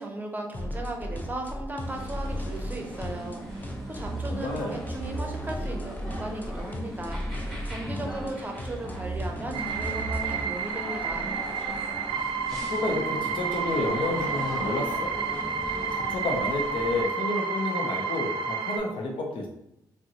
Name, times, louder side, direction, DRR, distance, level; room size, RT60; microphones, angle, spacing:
voice 1, 0.0-11.3, right 1 dB, 20° right, 2 dB, 0.7 m, -37 dB
sound 1, 0.5-10.4, right 1 dB, 20° left, 0.5 m, -35 dB
sound 2, 1.8-17.0, equal, 5° left, 1.2 m, -39 dB
voice 2, 4.3-4.8 12.7-15.1 15.9-19.5, left 2 dB, 80° left, 1 dB, 0.7 m, -30 dB
sound 3, 9.5-18.8, right 5 dB, 80° right, 0.4 m, -30 dB
3.6 x 2.1 x 2.9 m, 0.82 s
supercardioid pair, 60°, 9 cm